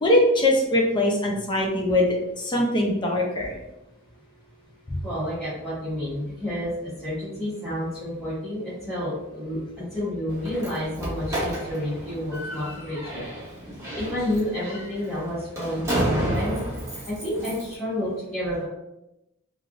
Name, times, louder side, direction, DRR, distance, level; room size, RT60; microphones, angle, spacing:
voice 1, 0.0-2.1 2.4-3.5 4.9-5.0, left 1 dB, 20° left, -1 dB, 0.5 m, -21 dB
voice 2, 5.0-13.3 13.9-16.6 17.1-18.6, left 1 dB, ahead, -15 dB, 1.2 m, -30 dB
Slam, 10.3-17.7, right 1 dB, 15° right, 0.8 m, -31 dB
3.4 x 2.4 x 2.4 m, 0.89 s
head